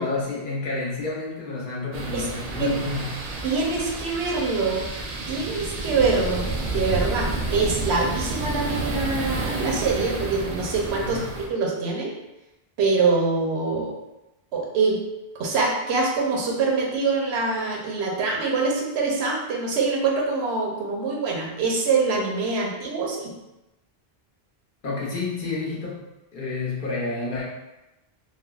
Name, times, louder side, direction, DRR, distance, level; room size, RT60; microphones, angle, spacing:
voice 1, 0.0-3.2 7.5-7.6 11.0-11.3 24.8-26.0 26.3-27.4, left 3 dB, 60° left, -5 dB, 0.8 m, -30 dB
sound 1, 1.9-11.5, right 2 dB, 60° right, 0.6 m, -30 dB
voice 2, 3.4-4.9 5.3-11.2 11.5-12.1 12.8-13.9 14.5-15.0 15.4-23.3, right 4 dB, 85° right, -1 dB, 0.9 m, -24 dB
3.4 x 2.0 x 2.3 m, 0.98 s
omnidirectional pair, 1.1 m